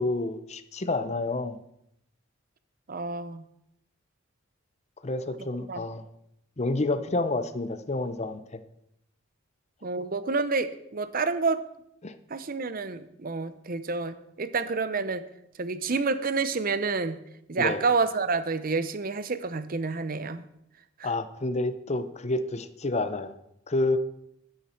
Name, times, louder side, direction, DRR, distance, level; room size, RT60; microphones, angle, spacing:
voice 1, 0.0-1.6 5.0-6.0 6.6-8.6 12.0-12.1 17.6-17.8 21.0-23.3 23.7-24.0, left 2 dB, 35° left, 11 dB, 0.8 m, -29 dB
voice 2, 2.9-3.4 5.7-5.8 9.8-11.7 12.3-15.2 15.6-17.2 17.5-20.5 21.0-21.1, right 4 dB, 45° right, 13 dB, 0.8 m, -29 dB
12.0 x 10.0 x 4.5 m, 0.77 s
head